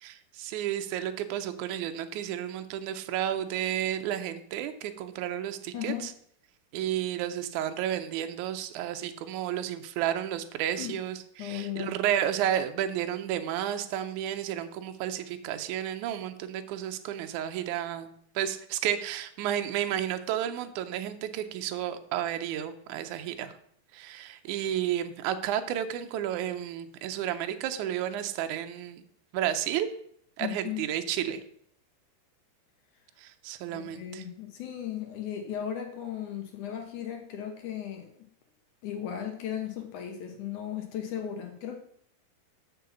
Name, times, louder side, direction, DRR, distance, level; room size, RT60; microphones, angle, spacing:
voice 1, 0.0-5.9 6.7-23.5 23.9-29.0 29.3-29.9 30.4-31.4 33.2-34.2, right 11 dB, 75° right, 8 dB, 1.8 m, -32 dB
voice 2, 5.7-6.1 10.8-10.9 11.4-11.9 30.4-30.8 33.7-38.3 38.8-41.8, left 10 dB, 65° left, 3 dB, 2.3 m, -36 dB
7.6 x 5.8 x 7.0 m, 0.66 s
omnidirectional pair, 4.2 m